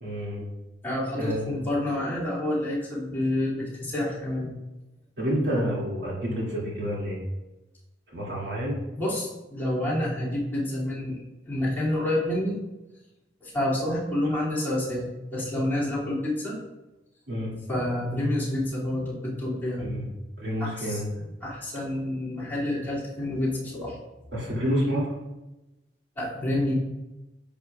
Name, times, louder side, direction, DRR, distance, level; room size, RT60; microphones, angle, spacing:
voice 1, 0.0-0.5 1.1-1.6 5.2-7.2 8.1-8.8 14.3-14.4 17.3-17.5 19.8-20.1 20.4-21.1 24.3-25.2, equal, 70° right, -5 dB, 2.3 m, -29 dB
voice 2, 0.8-4.5 8.9-12.6 13.4-16.6 17.7-19.9 20.6-21.0 21.4-23.9 26.2-26.7, left 1 dB, 10° left, -9 dB, 2.5 m, -28 dB
10.0 x 6.9 x 2.4 m, 1.0 s
head